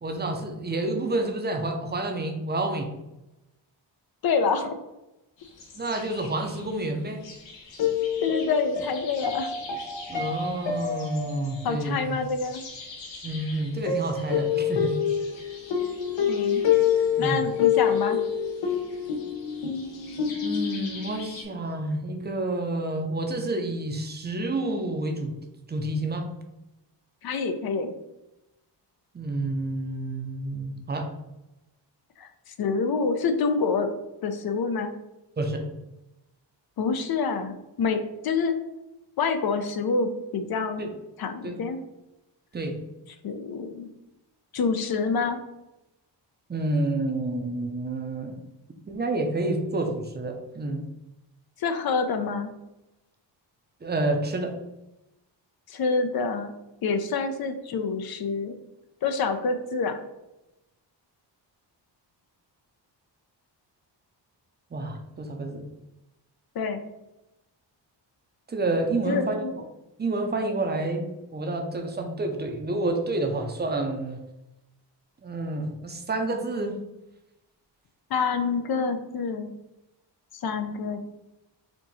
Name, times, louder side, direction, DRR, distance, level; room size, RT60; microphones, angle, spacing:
voice 1, 0.0-2.9 5.7-7.2 10.1-12.2 13.2-15.0 17.2-17.4 20.4-25.3 25.7-26.3 29.1-31.1 35.4-35.7 40.8-40.9 41.4-41.6 42.5-42.8 46.5-48.4 48.9-50.8 53.8-54.5 64.7-65.7 68.5-69.5 70.0-74.2 75.2-76.8, right 2 dB, 25° right, 4 dB, 0.6 m, -29 dB
voice 2, 4.2-4.8 8.2-9.5 11.6-12.6 16.3-16.6 17.2-18.2 27.2-27.9 32.2-32.3 32.6-33.9 34.2-34.9 36.8-38.6 39.2-40.9 41.2-41.8 43.2-43.9 44.5-45.4 51.6-52.5 55.7-56.5 56.8-58.5 59.0-60.0 66.6-66.8 69.1-69.5 78.1-79.5 80.4-81.0, left 4 dB, 55° left, 8 dB, 0.6 m, -27 dB
sound 1, 5.5-6.6 7.2-21.4, left 8 dB, 80° left, 1.0 m, -28 dB
4.5 x 2.7 x 4.0 m, 0.94 s
wide cardioid pair, 160°, 44 cm